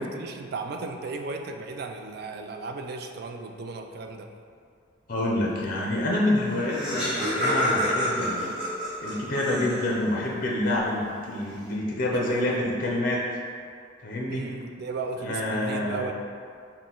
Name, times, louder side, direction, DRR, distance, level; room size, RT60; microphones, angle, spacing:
voice 1, 0.0-4.3 12.1-12.6 14.3-16.1, right 3 dB, 55° right, 4 dB, 0.4 m, -35 dB
voice 2, 5.1-8.5 9.0-13.2 14.0-14.5 15.2-16.1, left 1 dB, 45° left, -2 dB, 0.5 m, -27 dB
Laughter, 6.1-6.2 6.4-10.1, equal, 5° right, 1.3 m, -28 dB
6.0 x 2.1 x 3.8 m, 2.3 s
head